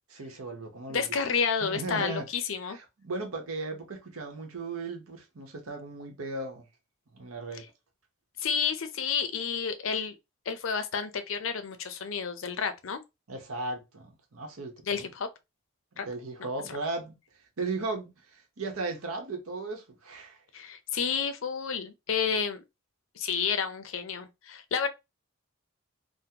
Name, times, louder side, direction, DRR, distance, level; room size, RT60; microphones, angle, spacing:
voice 1, 0.1-1.1 1.6-2.3 2.7-6.7 7.1-7.7 13.3-15.1 16.0-17.1 17.6-20.4, right 3 dB, 85° right, 0.9 m, -36 dB
voice 2, 0.9-2.8 7.5-7.6 8.4-10.2 10.5-13.0 14.8-15.3 16.0-16.1 16.4-16.5 20.5-22.6 23.2-24.9, left 6 dB, 65° left, 0.5 m, -30 dB
3.6 x 2.1 x 2.8 m
head